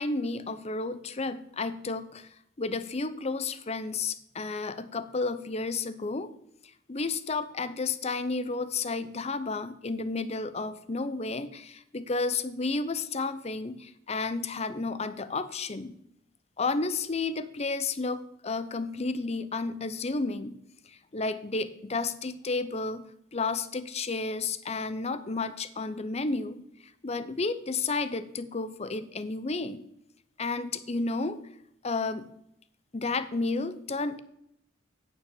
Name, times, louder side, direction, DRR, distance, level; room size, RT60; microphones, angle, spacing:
voice 1, 0.0-2.3 2.6-6.3 6.9-15.9 16.6-20.6 20.9-23.0 23.3-26.6 27.0-29.8 30.4-31.4 31.8-32.3 32.9-34.2, left 3 dB, 35° left, 13 dB, 0.7 m, -32 dB
9.1 x 7.3 x 7.0 m, 0.75 s
head